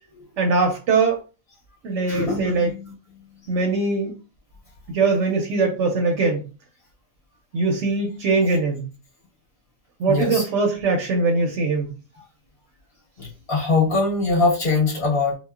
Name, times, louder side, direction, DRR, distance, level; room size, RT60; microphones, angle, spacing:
voice 1, 0.4-1.2 1.8-2.7 3.5-4.1 4.9-6.5 7.5-8.8 10.0-11.9, right 3 dB, 65° right, 3 dB, 0.8 m, -21 dB
voice 2, 2.1-2.9 10.1-10.4 13.2-15.4, left 3 dB, 45° left, -6 dB, 1.4 m, -22 dB
2.9 x 2.0 x 2.3 m, 0.33 s
omnidirectional pair, 1.4 m